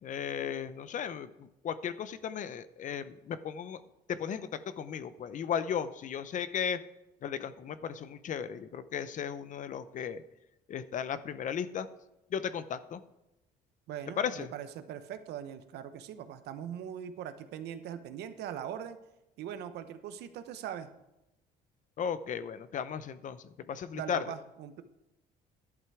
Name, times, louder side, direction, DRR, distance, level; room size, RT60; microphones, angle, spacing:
voice 1, 0.0-3.8 4.1-6.8 7.2-10.2 10.7-11.9 12.3-13.0 14.2-14.5 22.0-23.4 23.7-24.2, left 8 dB, 50° left, 14 dB, 0.7 m, -35 dB
voice 2, 13.9-19.0 19.4-20.9 23.9-24.8, right 9 dB, 75° right, 10 dB, 0.9 m, -41 dB
11.0 x 7.8 x 4.8 m, 0.93 s
cardioid pair, 110°, 17 cm